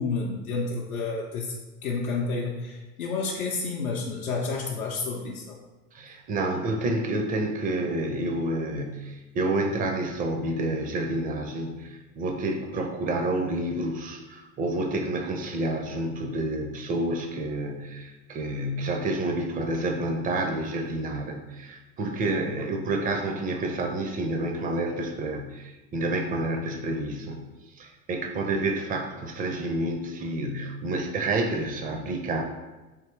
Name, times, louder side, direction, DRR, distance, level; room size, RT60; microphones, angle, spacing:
voice 1, 0.0-1.5 1.8-5.6, left 4 dB, 80° left, -2 dB, 0.6 m, -30 dB
voice 2, 5.9-27.4 27.8-32.4, right 2 dB, 20° right, 3 dB, 0.4 m, -29 dB
3.3 x 2.8 x 3.1 m, 1.1 s
hypercardioid pair, 80°, 42 cm